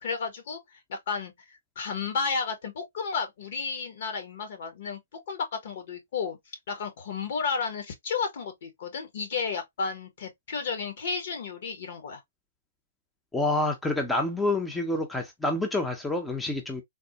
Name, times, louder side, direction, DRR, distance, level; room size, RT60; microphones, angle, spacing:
voice 1, 0.0-5.0 5.3-6.4 6.7-12.2, left 5 dB, 55° left, 1.1 m, -32 dB
voice 2, 13.3-16.8, left 2 dB, 5° left, 0.6 m, -28 dB
3.5 x 2.0 x 2.8 m
hypercardioid pair, 130°, 0 cm